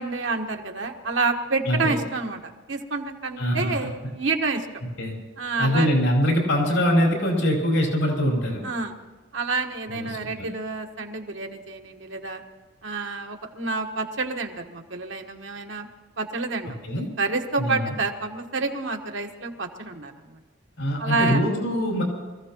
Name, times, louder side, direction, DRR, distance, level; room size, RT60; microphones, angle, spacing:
voice 1, 0.0-4.7 5.4-5.9 8.6-8.9 9.3-12.4 12.8-15.9 16.2-16.8 17.2-20.4 21.0-21.4, right 3 dB, 70° right, 3 dB, 1.4 m, -28 dB
voice 2, 3.4-3.8 5.0-5.1 5.6-8.6 9.9-10.5 16.8-17.1 17.6-17.9 20.8-22.0, equal, 80° left, -1 dB, 5.4 m, -23 dB
26.0 x 15.0 x 3.0 m, 1.3 s
head